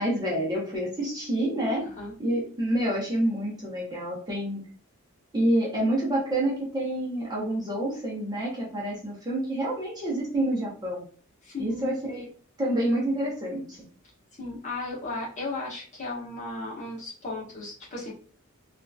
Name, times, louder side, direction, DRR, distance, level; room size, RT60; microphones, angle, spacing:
voice 1, 0.0-1.9 2.2-4.7 5.3-11.0 11.6-12.3 12.6-13.8, right 1 dB, 20° right, -5 dB, 0.9 m, -28 dB
voice 2, 11.4-11.9 14.4-18.1, left 2 dB, 35° left, -5 dB, 1.0 m, -35 dB
2.7 x 2.4 x 2.4 m, 0.42 s
head